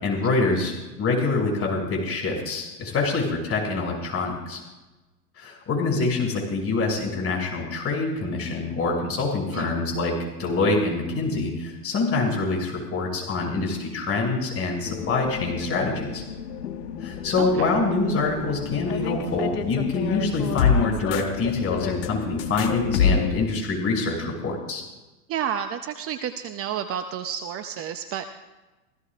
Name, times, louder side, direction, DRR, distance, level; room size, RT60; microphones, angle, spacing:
voice 1, 0.0-4.6 5.4-16.2 17.0-24.8, left 3 dB, 30° left, 0 dB, 6.4 m, -25 dB
sound 1, 14.8-23.5, left 7 dB, 70° left, 1.8 m, -28 dB
voice 2, 17.4-17.7 25.3-28.3, right 9 dB, 30° right, 7 dB, 0.8 m, -31 dB
27.5 x 16.5 x 2.5 m, 1.1 s
hypercardioid pair, 115°, 48 cm